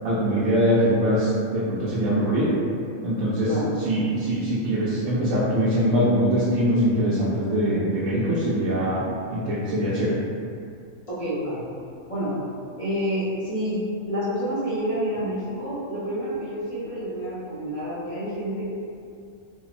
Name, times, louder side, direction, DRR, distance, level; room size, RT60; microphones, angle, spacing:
voice 1, 0.0-2.5 3.0-3.5 3.8-9.0 9.3-10.1, equal, 80° right, -8 dB, 1.0 m, -22 dB
voice 2, 11.1-11.6 12.1-12.4 12.8-18.7, equal, 40° left, -11 dB, 0.5 m, -28 dB
3.4 x 2.0 x 2.4 m, 2.4 s
omnidirectional pair, 1.5 m